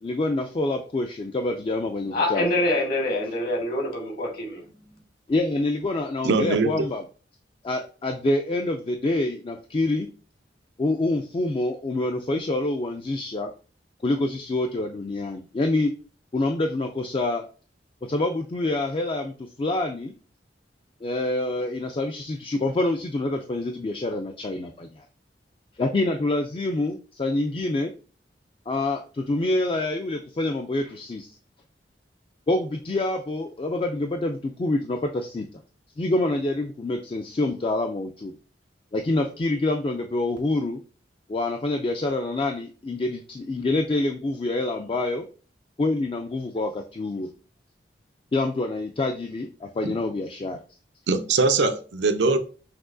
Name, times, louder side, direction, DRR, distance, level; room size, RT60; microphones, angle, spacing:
voice 1, 0.0-2.5 5.3-7.0 7.6-10.1 10.8-13.5 14.0-15.9 16.3-17.4 18.0-20.1 21.0-25.1 25.8-27.9 28.7-31.4 32.5-35.5 36.0-38.3 38.9-40.8 41.3-45.3 45.8-47.3 48.3-50.6, left 2 dB, 30° left, 0.3 m, -26 dB
voice 2, 2.1-4.6, left 1 dB, 60° left, 1.6 m, -25 dB
voice 3, 6.2-6.7 49.8-50.0 51.1-52.4, right 3 dB, 85° right, 0.5 m, -22 dB
5.9 x 2.7 x 2.6 m
head